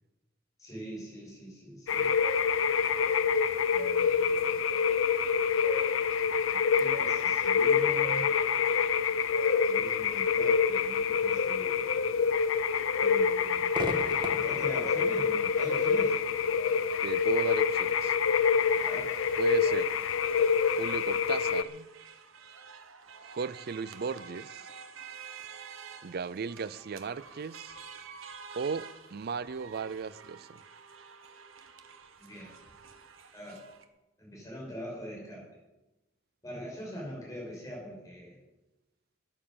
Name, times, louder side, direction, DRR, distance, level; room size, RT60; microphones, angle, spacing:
voice 1, 0.6-2.2 3.7-4.6 6.5-8.3 9.6-12.1 13.0-13.8 14.2-16.2 18.8-19.2 32.2-32.5 33.3-33.6 34.2-35.5 36.4-38.4, equal, 15° left, 6.5 m, -43 dB
sound 1, 1.9-21.6, left 6 dB, 75° left, 0.6 m, -26 dB
Crowd / Fireworks, 13.7-21.1, right 1 dB, 25° right, 1.6 m, -44 dB
voice 2, 17.0-18.2 19.4-19.9 20.8-21.9 23.2-24.7 26.0-27.8 28.5-30.6, right 5 dB, 50° right, 0.5 m, -36 dB
sound 2, 18.6-33.8, right 6 dB, 80° right, 1.3 m, -49 dB
13.5 x 9.8 x 7.0 m
head